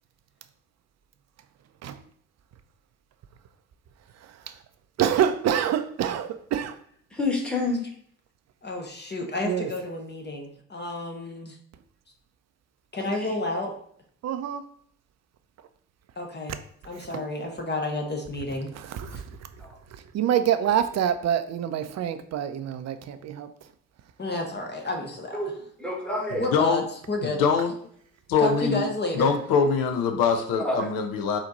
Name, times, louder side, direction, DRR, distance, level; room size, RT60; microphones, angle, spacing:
voice 1, 4.2-4.5 5.0-6.8 9.4-9.7 14.2-14.6 17.0-17.2 18.7-19.4 20.1-23.5, right 9 dB, 45° right, 0.5 m, -26 dB
voice 2, 7.1-7.8 13.2-13.3 19.6-19.8 25.3-25.5 25.8-26.5 30.6-30.9, left 2 dB, 5° left, 1.4 m, -28 dB
voice 3, 8.6-11.5 12.9-13.7 16.2-16.6 16.8-18.7 19.1-19.2 24.2-25.4 26.4-27.4 28.4-29.3, left 2 dB, 25° left, 1.1 m, -30 dB
voice 4, 27.2-27.7 28.3-28.8 29.2-31.4, left 6 dB, 55° left, 0.7 m, -23 dB
4.2 x 2.9 x 3.9 m
figure-of-eight pair, 40°, 39 cm